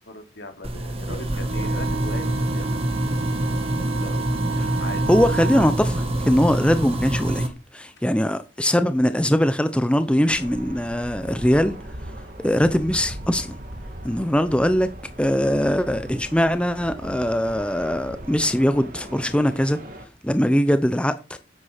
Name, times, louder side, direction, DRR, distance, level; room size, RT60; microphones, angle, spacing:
voice 1, 0.0-2.7 4.0-4.3 4.8-5.1, left 1 dB, 75° left, 3.5 m, -38 dB
sound 1, 0.6-7.5, right 1 dB, 35° right, 2.0 m, -25 dB
Wind instrument woodwind instrument, 1.5-5.8, right 4 dB, 85° right, 2.6 m, -32 dB
voice 2, 5.1-7.5 7.7-11.8 12.4-13.6 14.0-14.9 15.2-19.8 20.2-21.4, equal, 5° left, 0.7 m, -21 dB
sound 2, 10.3-20.1, right 1 dB, 50° right, 2.1 m, -39 dB
9.9 x 8.2 x 6.5 m
head